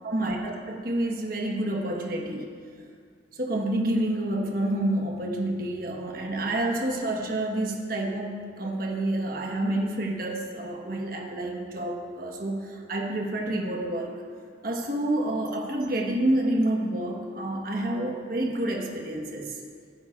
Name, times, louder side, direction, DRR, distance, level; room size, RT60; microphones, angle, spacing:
voice 1, 0.0-2.5 3.3-14.1 14.6-19.6, right 1 dB, 55° right, 0 dB, 1.2 m, -28 dB
16.0 x 8.9 x 2.5 m, 2.1 s
head